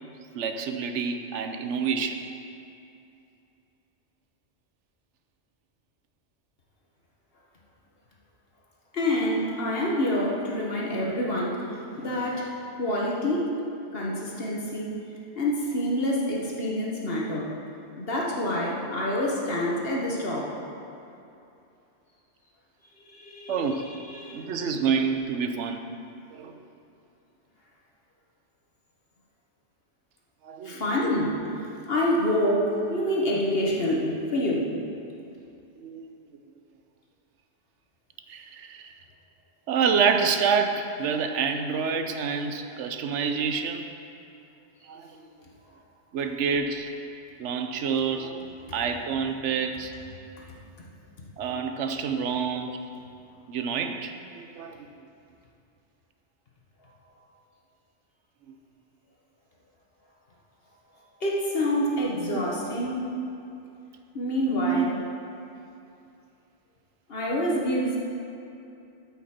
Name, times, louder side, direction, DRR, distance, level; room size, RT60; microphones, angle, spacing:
voice 1, 0.3-2.2 23.5-24.0 24.3-25.8 26.3-26.6 30.4-30.8 35.8-36.0 38.3-38.9 39.7-43.8 44.8-45.2 46.1-46.9 47.4-49.9 51.4-52.8 53.5-54.9 62.3-62.5 63.1-63.3 64.6-64.9, right 6 dB, 80° right, 6 dB, 1.0 m, -28 dB
voice 2, 8.9-12.5 12.8-13.5 13.9-14.9 15.3-17.5 18.0-20.5 23.1-24.5 30.6-34.7 61.2-63.0 64.1-65.0 67.1-68.0, left 1 dB, 55° left, -3 dB, 1.4 m, -27 dB
13.0 x 5.7 x 4.3 m, 2.7 s
omnidirectional pair, 1.2 m